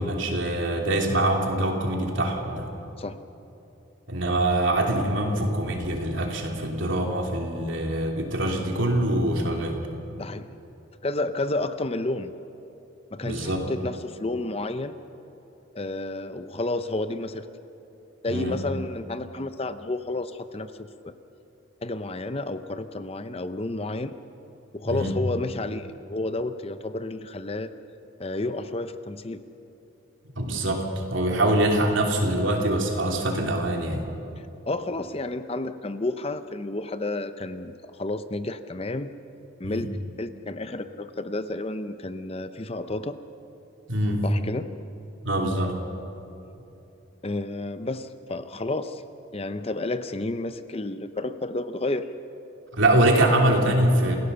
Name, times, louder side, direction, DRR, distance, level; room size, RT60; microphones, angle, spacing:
voice 1, 0.0-2.7 4.1-9.8 13.2-13.6 18.3-18.6 24.9-25.1 30.4-34.0 39.6-39.8 43.9-44.2 45.2-45.8 52.7-54.2, right 1 dB, 70° right, 1 dB, 3.0 m, -24 dB
voice 2, 10.2-10.5 11.0-12.3 13.1-14.9 15.7-17.5 18.2-21.1 21.8-24.1 24.7-27.7 28.2-29.4 34.7-39.1 39.6-39.9 40.2-43.2 44.2-44.8 47.2-49.0 49.3-52.1, left 2 dB, 30° left, 11 dB, 0.6 m, -31 dB
28.0 x 17.0 x 6.9 m, 2.9 s
head